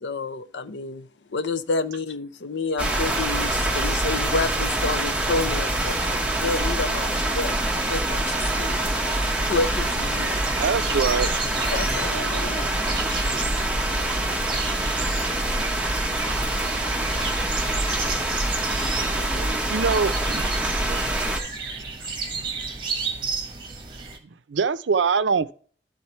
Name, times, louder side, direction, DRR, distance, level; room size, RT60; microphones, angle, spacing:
voice 1, 0.0-6.0 6.3-7.6 7.9-10.4 11.7-12.1, left 3 dB, 75° left, 0.6 m, -29 dB
sound 1, 2.8-21.4, right 1 dB, 5° right, 0.8 m, -25 dB
sound 2, 9.5-24.2, right 4 dB, 25° right, 1.4 m, -34 dB
voice 2, 10.6-11.3 19.7-20.6 22.4-22.5 24.5-25.5, right 5 dB, 85° right, 0.5 m, -23 dB
voice 3, 11.4-12.8 19.1-19.9 20.9-21.1, equal, 50° left, 2.0 m, -39 dB
sound 3, 13.1-21.8, left 1 dB, 10° left, 3.1 m, -46 dB
12.0 x 4.0 x 4.3 m
head